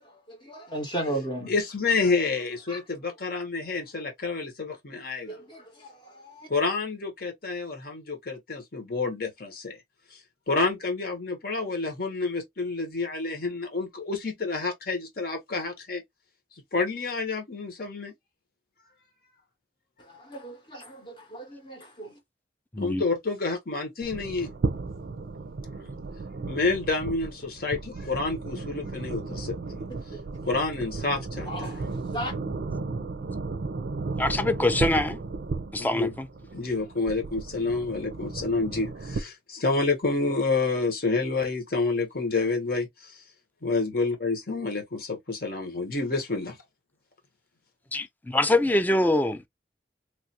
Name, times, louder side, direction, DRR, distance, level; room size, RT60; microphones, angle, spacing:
voice 1, 0.5-1.5 2.7-2.8 5.3-5.6 6.3-6.5 20.3-22.1 31.5-31.8 32.1-32.3, right 1 dB, 25° left, 0.8 m, -34 dB
voice 2, 1.5-5.4 6.5-9.8 10.1-10.2 10.5-16.0 16.7-18.1 22.8-24.5 26.5-29.8 30.4-31.7 35.8-36.1 36.5-42.9 43.6-46.6, left 3 dB, 55° left, 1.1 m, -28 dB
sound 1, 24.0-39.2, right 3 dB, 65° right, 0.4 m, -34 dB
voice 3, 34.2-35.2 35.7-36.3 47.9-49.5, left 1 dB, 10° left, 0.4 m, -24 dB
3.1 x 2.4 x 2.7 m
head